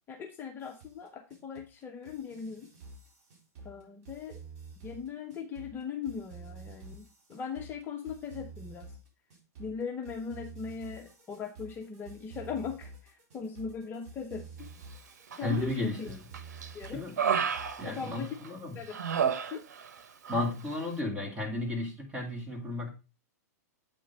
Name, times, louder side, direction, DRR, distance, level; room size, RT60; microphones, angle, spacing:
voice 1, 0.1-2.7 3.6-4.4 4.8-8.9 9.6-14.7 15.4-16.1 16.7-17.0 17.8-18.4 18.7-19.0 19.5-19.6, left 6 dB, 25° left, 0.8 m, -39 dB
sound 1, 0.6-18.0, right 4 dB, 50° right, 4.2 m, -49 dB
Human voice, 15.3-15.9 16.3-18.5 18.9-20.0 20.2-20.5, right 7 dB, 85° right, 0.9 m, -32 dB
voice 2, 15.4-16.2 16.9-17.2 17.8-18.8 20.3-22.9, left 2 dB, 10° right, 2.1 m, -34 dB
8.6 x 3.8 x 5.4 m
hypercardioid pair, 135°, 9 cm